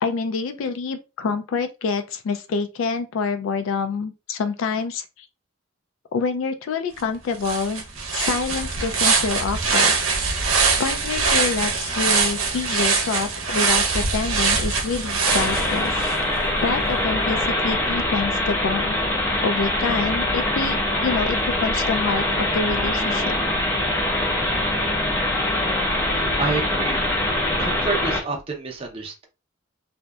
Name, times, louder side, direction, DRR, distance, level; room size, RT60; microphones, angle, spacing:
voice 1, 0.0-5.3 6.1-7.8 8.1-9.9 10.8-16.1 16.6-19.0 19.4-23.3, left 4 dB, 75° left, 0.3 m, -27 dB
sound 1, 7.0-7.1 7.4-16.2, right 4 dB, 80° right, 0.7 m, -22 dB
sound 2, 15.2-28.2, left 1 dB, 10° left, 0.7 m, -23 dB
voice 2, 26.4-27.1 27.6-29.3, right 4 dB, 30° right, 0.5 m, -28 dB
2.7 x 2.1 x 2.2 m
head